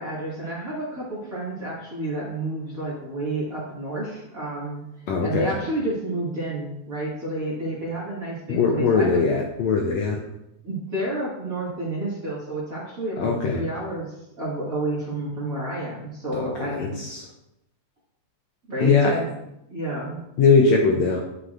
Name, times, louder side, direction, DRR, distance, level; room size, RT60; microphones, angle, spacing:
voice 1, 0.0-4.8 5.2-9.2 10.6-14.1 14.4-17.0 18.7-19.3 19.7-20.2, right 1 dB, 30° right, -7 dB, 2.1 m, -30 dB
voice 2, 5.1-5.6 8.5-10.2 13.2-13.6 16.3-17.3 18.8-19.2 20.4-21.2, left 4 dB, 70° left, 0 dB, 1.7 m, -21 dB
10.0 x 6.3 x 2.6 m, 0.82 s
omnidirectional pair, 3.6 m